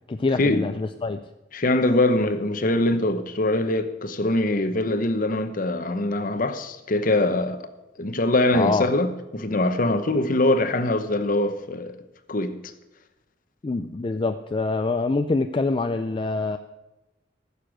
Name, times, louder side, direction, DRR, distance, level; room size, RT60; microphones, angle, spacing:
voice 1, 0.1-1.2 8.5-8.9 13.6-16.6, left 3 dB, 25° left, 0.4 m, -25 dB
voice 2, 1.5-7.6 8.0-11.9 12.3-12.6, left 2 dB, 45° left, 0.9 m, -23 dB
14.5 x 6.8 x 6.3 m
head